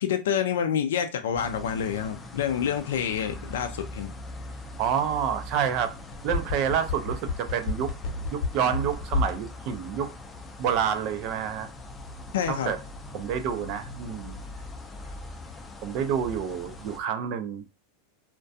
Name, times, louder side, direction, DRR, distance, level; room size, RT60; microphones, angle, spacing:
voice 1, 0.0-4.1 12.3-12.7, left 8 dB, 80° left, 0.3 m, -28 dB
sound 1, 1.4-17.0, left 1 dB, 15° left, 0.4 m, -42 dB
voice 2, 4.8-5.9 6.2-7.9 8.3-10.1 10.6-11.7 12.5-12.8 13.1-14.4 15.8-17.6, right 8 dB, 50° right, 0.4 m, -28 dB
sound 2, 6.0-9.4 9.7-9.8, left 3 dB, 50° left, 0.9 m, -29 dB
2.3 x 2.2 x 2.6 m
supercardioid pair, 120°, 0 cm